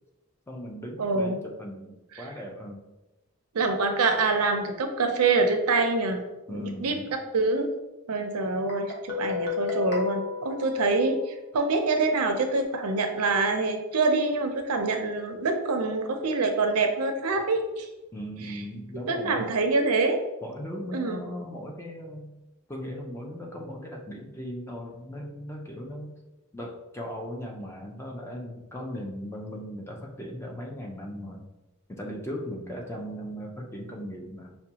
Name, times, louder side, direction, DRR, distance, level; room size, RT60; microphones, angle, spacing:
voice 1, 0.5-2.8 6.5-7.1 18.1-19.5 20.4-22.4 22.7-26.1 26.5-31.5 31.9-34.6, equal, 10° left, 1 dB, 0.4 m, -38 dB
voice 2, 1.0-1.4 2.2-2.3 3.5-7.0 7.3-7.7 8.1-17.9 18.5-18.6 19.1-20.2 20.9-21.2, right 3 dB, 85° right, 5 dB, 0.5 m, -25 dB
Guitar, 8.7-11.5, left 5 dB, 45° left, 0.9 m, -33 dB
5.7 x 2.2 x 2.8 m, 1.0 s
head